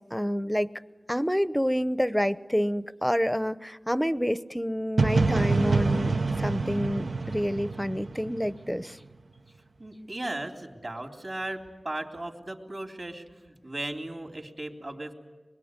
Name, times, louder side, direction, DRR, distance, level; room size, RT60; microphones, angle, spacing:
voice 1, 0.1-0.7 1.1-9.0, equal, 5° left, 15 dB, 0.8 m, -28 dB
sound 1, 5.0-8.8, right 3 dB, 80° right, 0.8 m, -26 dB
voice 2, 9.8-15.1, right 1 dB, 45° right, 3 dB, 3.3 m, -37 dB
26.0 x 21.5 x 9.7 m, 1.2 s
wide cardioid pair, 55°, 0 cm